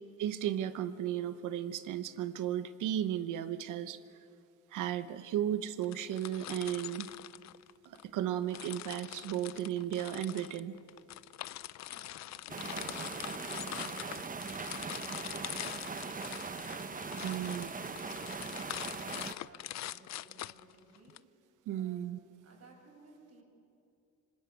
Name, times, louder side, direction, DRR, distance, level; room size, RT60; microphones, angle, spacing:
voice 1, 0.2-4.0 4.7-7.1 7.9-10.7 17.2-17.7 21.7-22.2, right 11 dB, 90° right, 12 dB, 1.0 m, -35 dB
sound 1, 5.8-8.1 8.5-21.2, left 14 dB, 65° left, 0.5 m, -44 dB
voice 2, 11.9-17.0 17.3-21.3 21.7-22.1 22.4-23.4, right 3 dB, 55° right, 0 dB, 7.8 m, -60 dB
sound 2, 12.5-19.3, right 5 dB, 25° right, 1.0 m, -40 dB
25.5 x 20.0 x 8.5 m, 2.6 s
cardioid pair, 90°, 30 cm